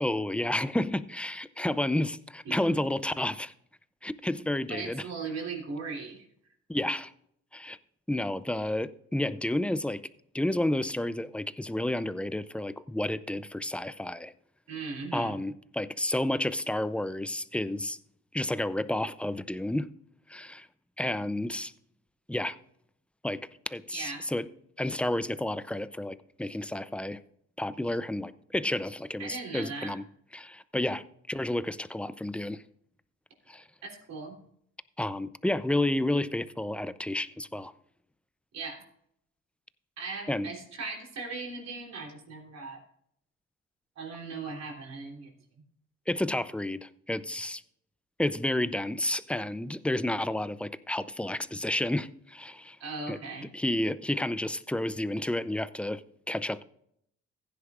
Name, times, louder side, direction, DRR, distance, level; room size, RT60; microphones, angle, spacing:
voice 1, 0.0-3.5 4.0-5.0 6.7-7.1 7.5-7.8 8.1-10.0 10.3-14.3 15.1-18.0 18.3-19.9 20.3-20.7 21.0-21.7 22.3-22.6 23.2-24.5 24.8-27.2 27.6-30.0 30.3-32.6 33.5-33.6 35.0-37.7 40.3-40.5 46.1-47.6 48.2-52.8 53.1-53.2 53.5-56.6, left 1 dB, 5° left, 0.5 m, -31 dB
voice 2, 4.7-6.2 14.7-15.4 23.9-24.3 29.2-29.9 33.8-34.4 38.5-38.8 40.0-42.8 44.0-45.3 52.8-53.5, right 4 dB, 60° right, 3.6 m, -38 dB
15.5 x 10.0 x 2.5 m
cardioid pair, 90°, 30 cm